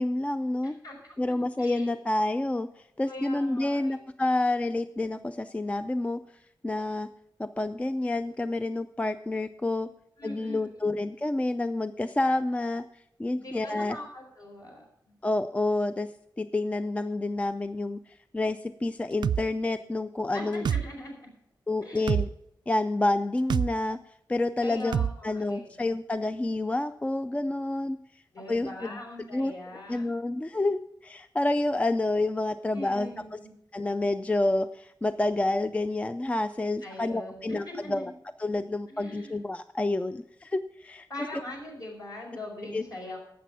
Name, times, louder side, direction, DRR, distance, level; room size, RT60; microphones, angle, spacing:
voice 1, 0.0-0.7 1.2-6.2 6.6-7.1 7.4-9.9 10.2-14.0 15.2-16.1 16.4-20.6 21.7-22.3 22.7-28.2 28.5-29.0 29.3-29.5 29.9-33.4 33.7-38.0 38.4-41.1 42.7-42.8, left 2 dB, 15° left, 11 dB, 0.3 m, -29 dB
voice 2, 0.8-1.9 3.1-4.0 10.2-10.9 13.3-15.1 20.3-21.3 21.8-22.2 24.6-25.7 28.3-30.1 32.7-33.5 36.8-38.1 38.9-39.3 41.1-43.2, left 1 dB, 55° left, 0 dB, 5.1 m, -42 dB
sound 1, 19.2-19.4 20.7-20.9 22.1-22.3 23.5-23.7 24.9-25.1, right 8 dB, 75° right, 0.3 m, -25 dB
12.0 x 8.3 x 5.7 m, 0.76 s
wide cardioid pair, 130°, 8 cm